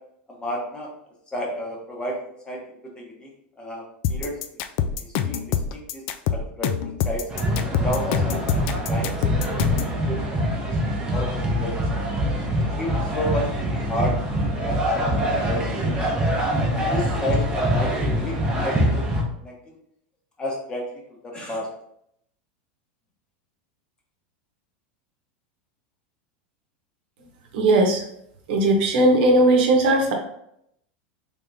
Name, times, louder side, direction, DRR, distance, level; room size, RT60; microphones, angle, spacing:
voice 1, 0.3-0.9 1.3-2.1 2.4-2.6 2.9-3.3 3.6-3.8 4.1-4.3 5.0-6.0 6.3-7.2 7.8-9.1 9.5-9.8 10.1-12.0 12.8-13.5 13.9-14.1 14.6-14.8 15.2-15.7 16.3-16.4 16.9-18.4 18.6-19.0 19.4-19.8 20.4-20.8 21.2-21.7, equal, 15° left, -1 dB, 0.9 m, -31 dB
sound 1, 4.0-10.0, left 8 dB, 55° left, 0.3 m, -25 dB
sound 2, 7.3-19.2, equal, 15° right, 0.8 m, -24 dB
voice 2, 27.5-28.0 28.5-30.1, right 2 dB, 70° right, 2 dB, 0.9 m, -18 dB
3.5 x 3.3 x 2.6 m, 0.74 s
supercardioid pair, 135°, 5 cm